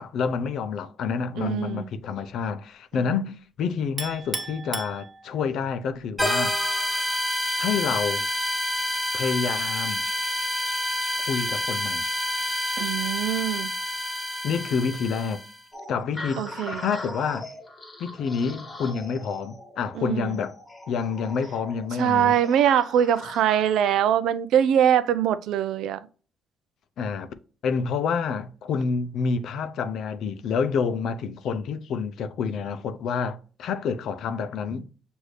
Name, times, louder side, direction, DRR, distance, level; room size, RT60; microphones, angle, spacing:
voice 1, 0.0-6.6 7.6-8.2 9.1-10.0 11.3-12.0 14.4-15.4 15.9-17.5 18.0-20.5 20.9-22.4 27.0-27.3 27.6-34.9, left 6 dB, 75° left, 0.4 m, -28 dB
voice 2, 1.4-1.9 2.9-3.1 12.8-13.7 16.4-16.8 20.0-20.4 22.0-26.0, right 10 dB, 85° right, 0.3 m, -23 dB
Chink clink, 4.0-5.6, right 3 dB, 35° right, 0.8 m, -35 dB
sound 1, 6.2-15.6, equal, ahead, 1.0 m, -28 dB
sound 2, 15.7-23.9, left 2 dB, 20° left, 1.3 m, -41 dB
6.4 x 2.6 x 3.1 m
cardioid pair, 90°, 0 cm